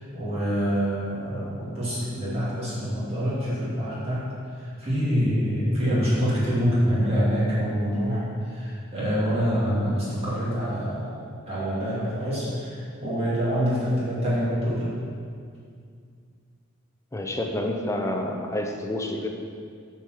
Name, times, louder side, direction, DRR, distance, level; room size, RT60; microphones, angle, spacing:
voice 1, 0.0-11.2 11.5-14.9, equal, 30° right, -9 dB, 2.4 m, -26 dB
voice 2, 17.1-19.3, left 1 dB, 15° left, 2 dB, 0.7 m, -28 dB
8.6 x 4.6 x 6.4 m, 2.3 s
head